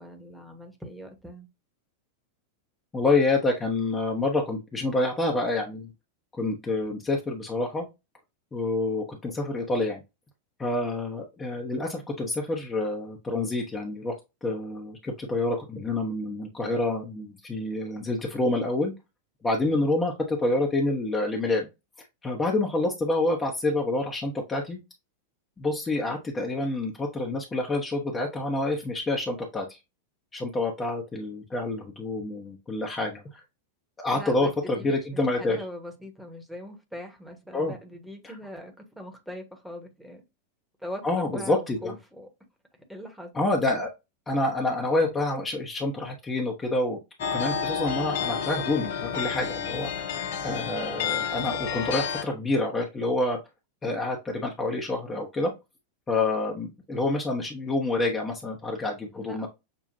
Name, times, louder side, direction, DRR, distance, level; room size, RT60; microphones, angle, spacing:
voice 1, 0.0-1.5 34.1-40.2 40.8-42.3 42.9-43.3 43.7-43.8 59.1-59.5, equal, ahead, 1.2 m, -41 dB
voice 2, 2.9-5.9 6.3-7.9 8.5-10.0 10.6-14.1 14.4-18.9 19.4-21.7 22.2-24.8 25.6-29.8 30.3-33.2 34.0-35.6 37.5-37.8 38.2-38.3 41.0-41.9 43.3-43.9 44.3-47.0 47.3-50.1 50.4-53.4 53.8-55.5 56.1-59.5, left 2 dB, 15° left, 0.9 m, -27 dB
sound 1, 47.2-52.2, left 7 dB, 55° left, 0.7 m, -30 dB
6.8 x 2.4 x 2.6 m
figure-of-eight pair, 90°, 0 cm